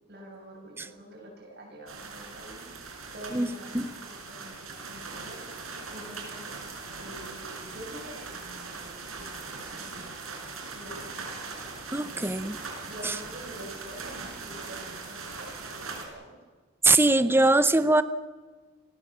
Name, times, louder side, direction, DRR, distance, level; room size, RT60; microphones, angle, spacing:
voice 1, 0.1-6.7 7.0-10.1 10.7-16.3, equal, 50° right, -1 dB, 7.0 m, -47 dB
sound 1, 1.9-16.0, right 4 dB, 85° right, 5.4 m, -40 dB
voice 2, 11.9-12.6 13.0-13.2 16.8-18.0, right 2 dB, 10° right, 13 dB, 0.7 m, -22 dB
28.0 x 19.5 x 7.4 m, 1.4 s
head